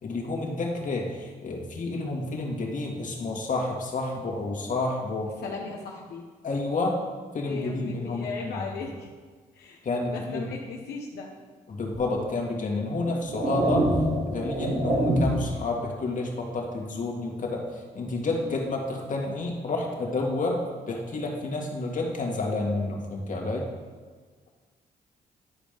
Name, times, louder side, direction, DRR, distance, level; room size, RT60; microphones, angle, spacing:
voice 1, 0.0-5.3 6.4-7.0 7.3-8.5 9.8-10.5 11.7-13.9 14.3-23.6, left 2 dB, 50° left, -1 dB, 2.1 m, -30 dB
voice 2, 5.4-6.2 7.4-9.1 9.5-11.3, left 4 dB, 85° left, -2 dB, 1.0 m, -37 dB
sound 1, 11.9-12.1 12.8-15.6, right 1 dB, 45° right, 2.7 m, -26 dB
11.0 x 5.1 x 5.2 m, 1.5 s
cardioid pair, 75°, 16 cm